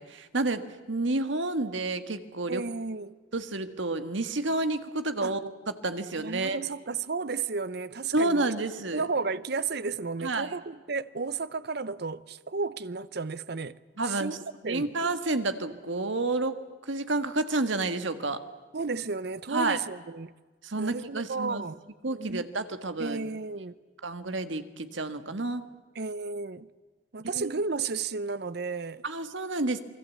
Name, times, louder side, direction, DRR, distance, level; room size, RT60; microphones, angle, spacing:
voice 1, 0.0-2.6 3.3-5.5 5.8-6.6 8.1-9.0 10.2-10.5 14.0-14.4 14.6-16.5 16.8-18.4 19.5-19.8 20.6-21.6 22.0-23.2 24.0-25.6 27.3-27.5 29.0-29.8, right 2 dB, 70° right, 1.6 m, -30 dB
voice 2, 2.5-3.2 5.2-5.3 6.2-8.5 8.9-13.8 14.0-14.4 14.6-15.1 18.7-20.3 20.8-22.4 23.0-23.7 25.9-26.7 27.1-29.1, right 4 dB, 55° right, 0.7 m, -33 dB
28.0 x 21.5 x 8.4 m
head